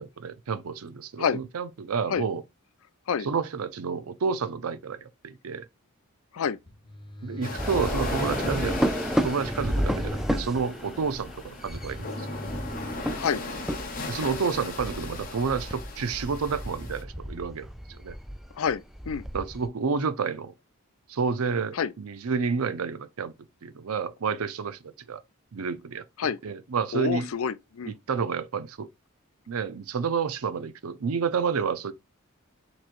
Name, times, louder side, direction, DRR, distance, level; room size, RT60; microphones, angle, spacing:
voice 1, 0.0-2.4 3.2-5.6 7.2-8.8 9.2-12.3 14.1-18.1 19.3-20.5 21.1-23.3 23.6-25.2 25.5-27.3 27.9-28.9 29.5-31.9, right 5 dB, 85° right, 0.6 m, -30 dB
sound 1, 6.6-13.5, left 1 dB, 25° left, 1.1 m, -42 dB
sound 2, 7.4-17.0, left 3 dB, 40° left, 1.3 m, -38 dB
sound 3, 7.6-19.7, equal, ahead, 0.3 m, -32 dB
voice 2, 18.6-19.2 21.7-21.9 26.2-26.4 26.9-27.9, left 6 dB, 75° left, 0.4 m, -27 dB
6.0 x 3.1 x 2.5 m
head